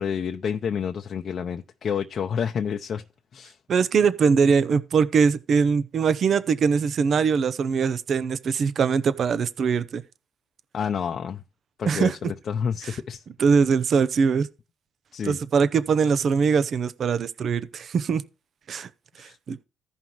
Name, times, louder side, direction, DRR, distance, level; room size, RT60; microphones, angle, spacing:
voice 1, 0.0-3.0 3.3-3.6 10.7-11.4 11.8-13.2 15.1-15.4 19.2-19.4, left 7 dB, 55° left, 0.6 m, -29 dB
voice 2, 3.7-10.0 11.8-12.2 12.8-13.0 13.4-14.5 15.2-18.2 18.7-18.9 19.2-19.6, right 5 dB, 55° right, 0.6 m, -22 dB
15.5 x 5.4 x 3.0 m
cardioid pair, 90°, 0 cm